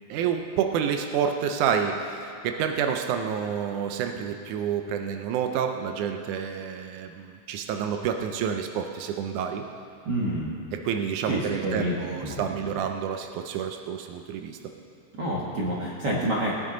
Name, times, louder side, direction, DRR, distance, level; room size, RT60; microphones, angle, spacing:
voice 1, 0.1-9.6 10.7-14.6, right 7 dB, 85° right, 5 dB, 1.7 m, -29 dB
voice 2, 10.0-10.5 11.3-11.9 12.2-12.4 15.2-16.5, right 1 dB, 70° right, -5 dB, 1.0 m, -28 dB
19.5 x 9.7 x 3.9 m, 2.5 s
omnidirectional pair, 4.3 m